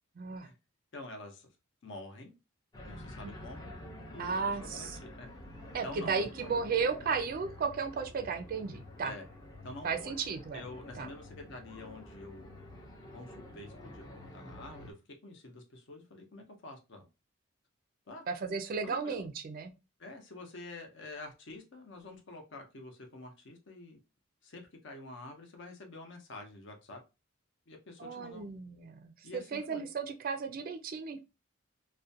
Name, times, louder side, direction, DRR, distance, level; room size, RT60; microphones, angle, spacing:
voice 1, 0.2-0.5 3.2-3.3 4.2-5.0 5.7-9.1 9.8-10.6 11.0-11.1 18.3-19.7 28.0-31.2, right 5 dB, 45° right, 0.3 m, -34 dB
voice 2, 0.9-1.5 1.8-2.3 2.8-3.8 4.1-5.3 5.8-6.5 9.0-9.3 9.6-10.2 10.5-12.5 13.1-14.9 15.2-17.0 18.1-18.2 18.8-19.2 20.0-24.0 24.4-27.0 27.7-28.4 29.2-29.9, left 2 dB, 60° left, 0.6 m, -47 dB
sound 1, 2.7-14.9, left 1 dB, 20° left, 0.5 m, -49 dB
2.4 x 2.1 x 2.6 m
head